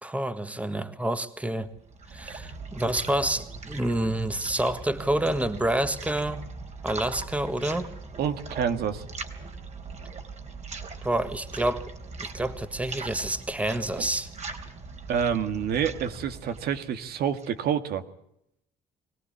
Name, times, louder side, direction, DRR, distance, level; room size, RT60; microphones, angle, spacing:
voice 1, 0.0-1.7 2.1-6.4 6.8-7.9 11.0-11.9 12.2-14.3, right 1 dB, 10° right, 10 dB, 1.7 m, -28 dB
sound 1, 1.6-17.6, right 4 dB, 45° right, 3.6 m, -40 dB
voice 2, 8.2-9.0 14.0-14.1 15.1-18.0, right 8 dB, 70° right, 9 dB, 1.8 m, -28 dB
23.5 x 17.5 x 8.5 m, 0.77 s
cardioid pair, 95°, 17 cm